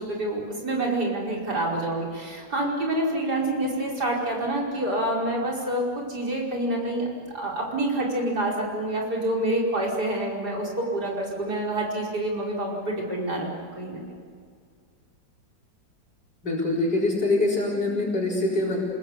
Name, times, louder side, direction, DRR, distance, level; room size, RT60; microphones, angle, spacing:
voice 1, 0.0-14.0, right 1 dB, 65° right, -2 dB, 5.7 m, -27 dB
voice 2, 16.4-18.8, left 2 dB, 70° left, -4 dB, 5.0 m, -24 dB
28.0 x 21.5 x 8.3 m, 2.1 s
omnidirectional pair, 1.9 m